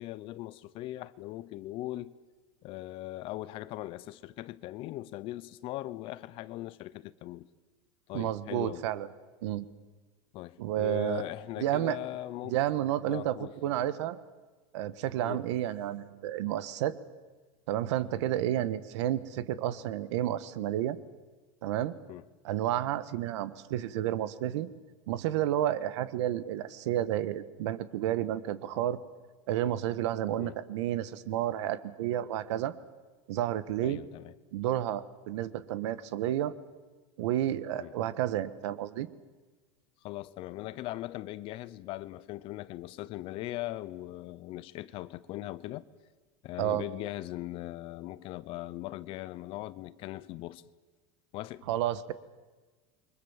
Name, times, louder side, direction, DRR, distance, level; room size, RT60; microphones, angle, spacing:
voice 1, 0.0-2.1 2.6-7.5 8.1-8.8 10.3-12.6 13.1-13.5 15.2-15.4 22.1-22.2 30.4-30.6 33.8-34.3 37.8-37.9 40.0-45.9 46.4-50.6 51.3-51.6, left 16 dB, 35° left, 0.7 m, -40 dB
voice 2, 8.1-9.1 9.4-9.6 10.6-11.2 11.6-12.0 12.5-14.2 14.7-16.9 17.7-21.0 21.6-21.9 22.4-24.7 25.1-29.0 29.5-32.7 33.3-34.0 34.5-36.5 37.2-39.1 46.6-46.8 51.7-52.1, right 12 dB, 70° right, 1.5 m, -31 dB
29.0 x 24.0 x 7.4 m
supercardioid pair, 170°, 16 cm